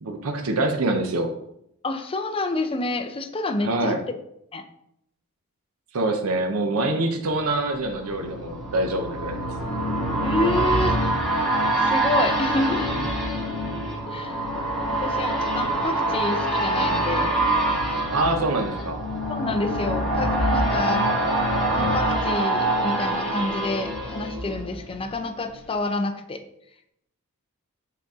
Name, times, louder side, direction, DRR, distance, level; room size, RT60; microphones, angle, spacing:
voice 1, 0.0-1.3 3.6-4.0 5.9-9.4 18.1-19.0, right 2 dB, 70° right, 4 dB, 0.7 m, -25 dB
voice 2, 1.8-4.0 4.5-4.6 10.2-11.0 11.4-11.5 11.8-13.0 14.1-14.5 14.9-17.4 19.3-21.1 21.7-26.4, left 2 dB, 25° left, 8 dB, 0.5 m, -28 dB
sound 1, 7.3-25.1 25.5-25.6, right 1 dB, ahead, 1.8 m, -25 dB
6.6 x 4.0 x 3.6 m, 0.77 s
head